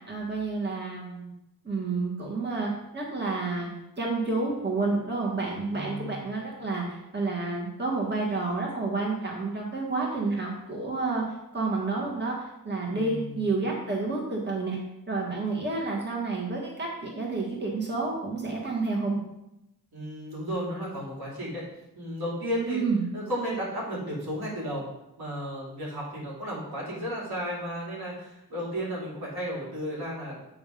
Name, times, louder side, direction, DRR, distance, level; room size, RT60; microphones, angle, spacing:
voice 1, 0.1-1.3 1.6-3.7 4.0-11.2 11.5-14.8 15.1-19.2 22.7-23.0, right 3 dB, 30° right, -2 dB, 1.6 m, -29 dB
voice 2, 5.7-6.3 12.9-13.5 19.9-21.6 21.9-22.8 23.1-24.9 25.2-30.5, equal, 80° right, -5 dB, 2.8 m, -34 dB
8.2 x 3.6 x 5.1 m, 0.88 s
cardioid pair, 75°, 38 cm